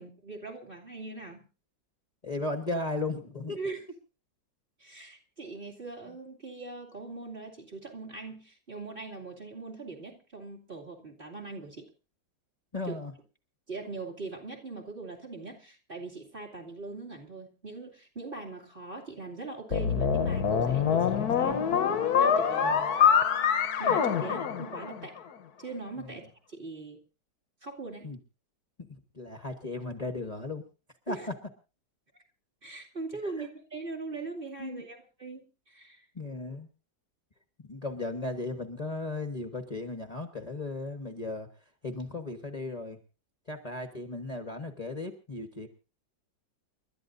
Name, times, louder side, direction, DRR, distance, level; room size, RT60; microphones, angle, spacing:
voice 1, 0.0-1.4 3.6-3.8 4.8-11.9 12.8-13.0 13.7-21.7 22.1-22.8 23.8-25.2 25.6-27.0 27.6-28.1 31.1-31.3 32.1-32.2 32.6-36.1, right 3 dB, 30° right, 1 dB, 2.6 m, -41 dB
voice 2, 2.2-3.6 12.7-13.1 22.6-22.9 23.9-24.3 26.0-26.2 28.0-28.2 28.8-30.6 31.1-31.3 33.2-33.5 34.6-34.9 36.1-36.7 37.6-41.5 41.8-43.0 43.5-45.7, left 2 dB, 25° left, 6 dB, 1.1 m, -36 dB
sound 1, 19.7-25.2, left 7 dB, 60° left, 1.4 m, -25 dB
30.0 x 12.5 x 2.6 m, 0.33 s
omnidirectional pair, 2.0 m